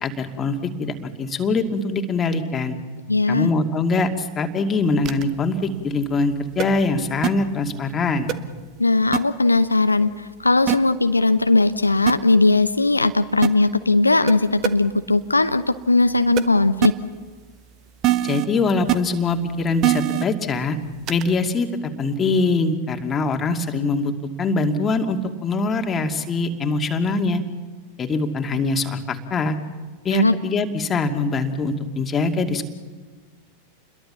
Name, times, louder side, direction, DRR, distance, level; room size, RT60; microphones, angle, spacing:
voice 1, 0.0-2.8 3.3-8.3 18.2-20.8 21.1-21.7 22.0-24.1 24.4-27.4 28.0-29.6 30.0-32.7, left 3 dB, 20° left, 4 dB, 2.6 m, -23 dB
voice 2, 3.1-3.5 8.8-16.9 30.1-30.3, left 2 dB, 80° left, 11 dB, 0.8 m, -18 dB
sound 1, 5.0-5.2 6.6-6.7 7.2-7.3 8.3-8.4 9.1-9.2 10.7-10.8 12.1-12.2 13.4-13.5 14.3-14.4 14.6-14.7 16.4-16.5 16.8-16.9 18.0-18.4 18.9-19.0 19.8-20.2 21.1-21.2, right 14 dB, 35° right, 1.4 m, -20 dB
30.0 x 22.0 x 7.1 m, 1.4 s
figure-of-eight pair, 90°, 0 cm